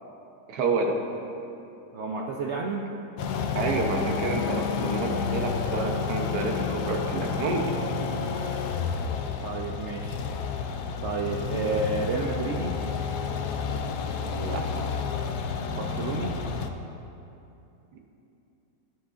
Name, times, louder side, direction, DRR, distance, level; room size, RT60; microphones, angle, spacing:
voice 1, 0.5-1.0 3.5-7.7 14.3-14.7, right 3 dB, 80° right, 2 dB, 1.5 m, -29 dB
voice 2, 1.9-2.9 9.4-10.2 11.0-12.8 15.7-16.4, right 3 dB, 65° right, 0 dB, 0.7 m, -30 dB
sound 1, 3.2-16.7, left 5 dB, 85° left, 1.2 m, -30 dB
12.0 x 10.0 x 2.5 m, 2.8 s
omnidirectional pair, 1.7 m